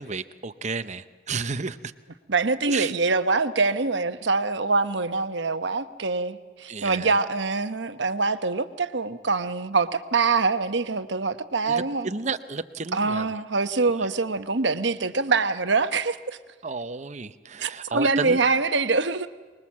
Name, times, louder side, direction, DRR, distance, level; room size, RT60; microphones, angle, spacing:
voice 1, 0.0-1.8 2.7-2.9 6.7-7.1 11.7-13.3 16.6-18.4, right 4 dB, 35° right, 11 dB, 0.8 m, -32 dB
voice 2, 2.3-12.1 12.9-16.4 17.6-19.3, right 3 dB, 65° right, 10 dB, 1.0 m, -24 dB
24.5 x 21.0 x 7.4 m, 1.3 s
head